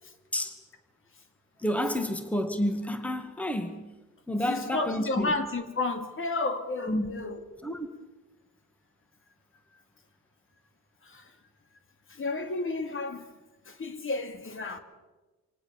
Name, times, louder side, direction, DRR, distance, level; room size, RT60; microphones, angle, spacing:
voice 1, 1.6-3.8 4.3-5.3 6.9-7.2 7.6-7.9, equal, 5° left, 2.0 m, -30 dB
voice 2, 4.4-7.4 11.0-11.3 12.1-13.3 13.7-14.8, left 3 dB, 45° left, 2.7 m, -32 dB
26.0 x 18.5 x 7.2 m
cardioid pair, 90°, 30 cm